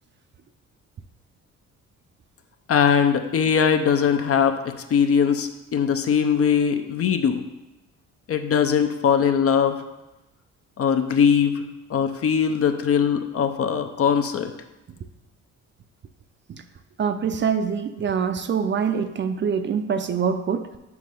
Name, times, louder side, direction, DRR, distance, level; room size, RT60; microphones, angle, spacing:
voice 1, 2.7-7.4 8.3-9.8 10.8-11.6 11.9-14.5, left 7 dB, 50° left, 7 dB, 0.7 m, -21 dB
voice 2, 17.0-20.8, right 6 dB, 40° right, 9 dB, 0.5 m, -25 dB
5.5 x 4.8 x 5.3 m, 1.0 s
cardioid pair, 90°, 30 cm